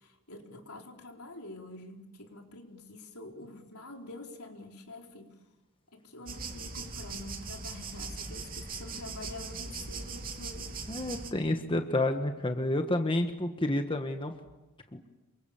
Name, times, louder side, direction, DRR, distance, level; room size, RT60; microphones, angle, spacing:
voice 1, 0.0-5.4 5.9-10.8, left 2 dB, 75° left, 2 dB, 4.4 m, -46 dB
sound 1, 6.3-11.3, right 4 dB, 40° right, 3.2 m, -40 dB
voice 2, 10.9-14.3 14.9-15.0, left 1 dB, 25° left, 5 dB, 1.5 m, -29 dB
28.0 x 24.5 x 7.4 m, 1.0 s
head